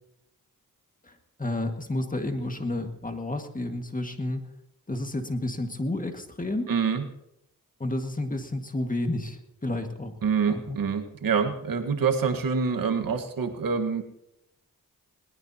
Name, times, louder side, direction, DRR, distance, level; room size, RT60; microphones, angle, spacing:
voice 1, 1.0-4.5 4.9-6.7 7.8-10.1 10.5-10.8, left 1 dB, 25° left, 5 dB, 1.8 m, -31 dB
voice 2, 6.7-7.0 10.2-14.0, right 6 dB, 80° right, 6 dB, 1.6 m, -26 dB
20.5 x 19.0 x 2.9 m, 0.82 s
cardioid pair, 85°, 34 cm